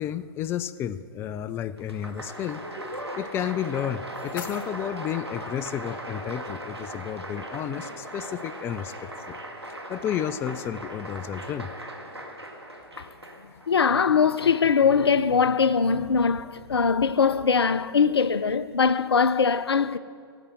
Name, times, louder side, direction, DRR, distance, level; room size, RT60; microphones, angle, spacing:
voice 1, 0.0-2.6 3.1-9.4 9.9-11.7, left 10 dB, 20° left, 0.4 m, -32 dB
Applause, 1.8-13.7, right 1 dB, 90° right, 2.0 m, -38 dB
sound 1, 3.6-5.6, left 5 dB, 60° left, 1.2 m, -43 dB
voice 2, 13.7-20.0, left 6 dB, 80° left, 0.5 m, -21 dB
17.0 x 8.2 x 7.7 m
figure-of-eight pair, 115°, 13 cm